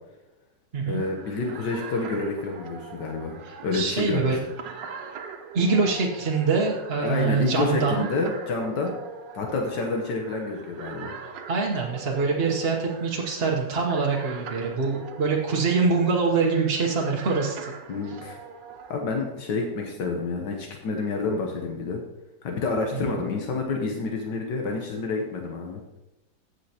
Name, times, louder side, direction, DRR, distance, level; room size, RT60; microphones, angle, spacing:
voice 1, 0.8-4.4 7.0-8.9 9.3-11.1 17.9-18.4 18.9-22.0 22.4-25.8, left 3 dB, 80° left, 1 dB, 1.6 m, -28 dB
sound 1, 0.9-19.0, right 6 dB, 85° right, 1.5 m, -42 dB
voice 2, 3.4-4.4 5.5-8.1 11.5-17.7 22.9-23.2, right 4 dB, 40° right, -1 dB, 1.0 m, -24 dB
16.0 x 6.4 x 2.9 m, 0.98 s
omnidirectional pair, 1.9 m